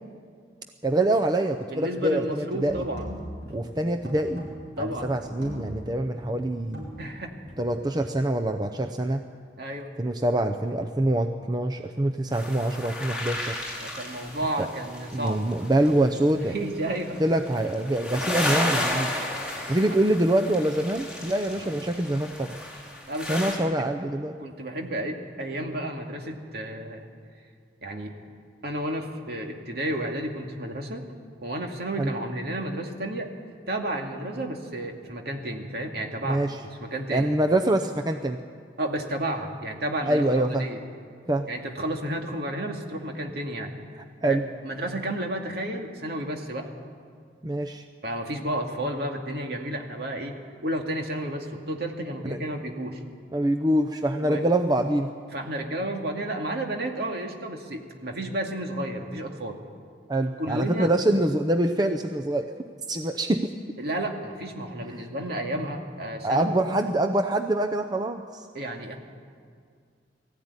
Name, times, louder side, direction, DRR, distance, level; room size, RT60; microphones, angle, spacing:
voice 1, 0.8-2.8 3.5-4.5 4.8-6.9 7.6-9.2 10.0-13.6 14.6-14.7 15.1-16.5 17.2-19.1 19.7-22.6 23.3-24.4 32.0-32.1 36.3-36.6 37.1-38.4 40.1-40.7 41.3-41.5 44.2-44.5 47.4-47.8 52.2-52.4 53.3-55.1 60.1-62.5 62.9-63.5 66.2-68.4, right 1 dB, 20° right, 5 dB, 0.7 m, -25 dB
voice 2, 1.7-3.1 4.8-5.1 7.0-7.4 9.6-9.9 13.8-15.4 16.5-17.2 21.5-21.7 23.1-23.8 24.4-27.1 27.8-28.2 28.6-31.0 31.4-33.3 33.7-36.4 36.8-37.3 38.8-40.8 41.5-43.7 44.2-44.4 44.6-46.7 48.0-50.4 50.6-53.0 54.2-54.4 55.3-59.6 60.4-60.9 63.8-66.5 68.5-69.0, right 1 dB, 60° right, 2 dB, 2.3 m, -32 dB
sound 1, 2.5-7.8, equal, 90° right, 7.2 m, -40 dB
sound 2, 12.3-16.1 16.7-23.6, left 1 dB, 5° right, 4.3 m, -33 dB
20.5 x 15.0 x 9.7 m, 2.1 s
head